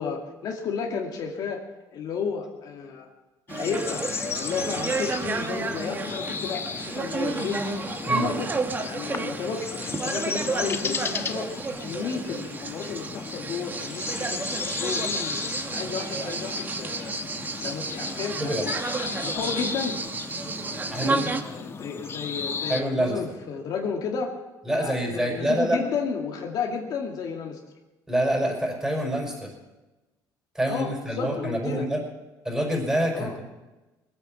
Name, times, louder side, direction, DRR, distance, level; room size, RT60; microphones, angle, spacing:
voice 1, 0.0-1.6 1.9-3.1 3.5-4.0 4.3-7.6 8.0-8.5 8.8-11.5 11.8-15.4 15.7-17.1 17.6-20.0 21.0-24.4 24.7-27.6 30.7-31.9 33.1-33.4, left 6 dB, 60° left, 1 dB, 2.3 m, -32 dB
sound 1, 3.5-22.8, left 5 dB, 35° left, 1.1 m, -35 dB
sound 2, 3.5-21.4, right 3 dB, 25° right, 1.2 m, -31 dB
voice 2, 20.9-21.3 22.7-23.2 24.7-25.8 28.1-29.5 30.5-32.0 32.4-33.4, right 1 dB, 10° right, 0 dB, 5.5 m, -26 dB
21.0 x 8.9 x 7.3 m, 1.1 s
cardioid pair, 115°, 8 cm